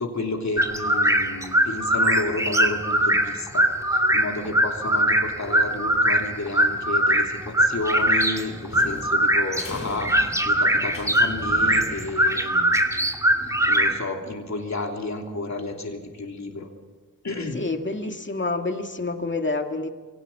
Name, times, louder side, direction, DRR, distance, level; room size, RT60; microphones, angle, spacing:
voice 1, 0.0-12.8 13.7-16.7 17.2-17.6, left 2 dB, 55° left, 2 dB, 3.1 m, -31 dB
sound 1, 0.6-14.0, right 1 dB, 10° right, 2.5 m, -22 dB
sound 2, 7.9-12.4, left 2 dB, 85° left, 6.7 m, -39 dB
voice 2, 17.5-19.9, left 3 dB, 35° left, 4 dB, 2.1 m, -28 dB
23.0 x 18.0 x 7.4 m, 1.3 s
cardioid pair, 55°, 33 cm